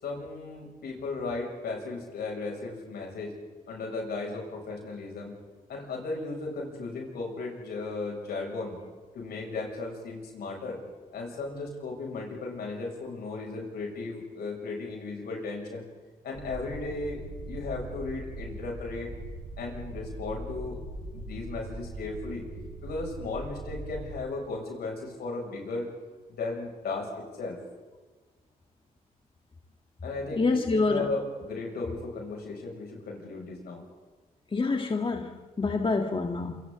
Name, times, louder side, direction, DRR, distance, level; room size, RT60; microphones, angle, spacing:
voice 1, 0.0-3.3 3.7-5.4 5.7-8.8 9.1-10.8 11.1-15.9 16.2-17.2 17.5-19.1 19.6-20.8 21.1-22.4 22.8-25.9 26.3-27.6 30.0-33.8, left 3 dB, 75° left, 0 dB, 7.2 m, -35 dB
sound 1, 16.3-24.1, right 2 dB, 75° right, 7.0 m, -41 dB
voice 2, 30.4-31.1 34.5-36.6, left 3 dB, 30° left, 4 dB, 1.9 m, -27 dB
27.5 x 26.0 x 4.1 m, 1.4 s
supercardioid pair, 55°, 17 cm